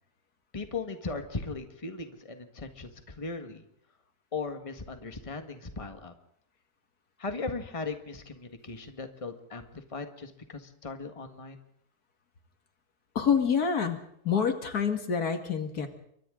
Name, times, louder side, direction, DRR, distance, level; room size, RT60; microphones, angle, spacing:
voice 1, 0.5-3.6 4.3-6.1 7.2-11.6, left 4 dB, 20° left, 6 dB, 1.6 m, -38 dB
voice 2, 13.2-14.0 14.2-15.9, left 6 dB, 80° left, 6 dB, 2.4 m, -27 dB
28.5 x 24.0 x 3.8 m, 0.72 s
omnidirectional pair, 1.6 m